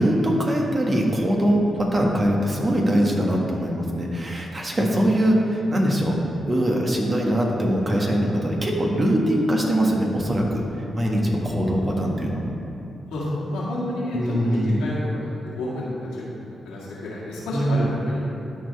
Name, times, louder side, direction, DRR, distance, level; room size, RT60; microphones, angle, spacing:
voice 1, 0.0-6.2 6.5-10.6 10.9-12.5 14.1-14.8 17.5-17.9, equal, 35° right, -1 dB, 1.5 m, -22 dB
voice 2, 11.4-11.8 13.1-18.2, left 1 dB, 85° left, -7 dB, 1.9 m, -30 dB
12.5 x 4.7 x 3.4 m, 2.7 s
supercardioid pair, 45°, 0 cm